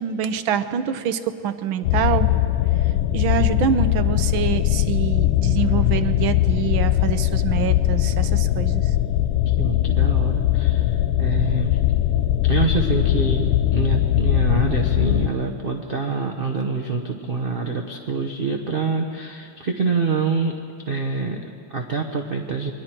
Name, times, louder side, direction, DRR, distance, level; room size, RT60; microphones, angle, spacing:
voice 1, 0.0-2.3 3.1-8.9, right 8 dB, 70° right, 11 dB, 1.5 m, -25 dB
sound 1, 1.8-15.3, left 14 dB, 80° left, 1.5 m, -20 dB
voice 2, 9.6-11.8 12.5-20.5 20.9-22.7, right 4 dB, 40° right, 2 dB, 0.8 m, -26 dB
28.0 x 22.0 x 4.5 m, 2.3 s
omnidirectional pair, 2.4 m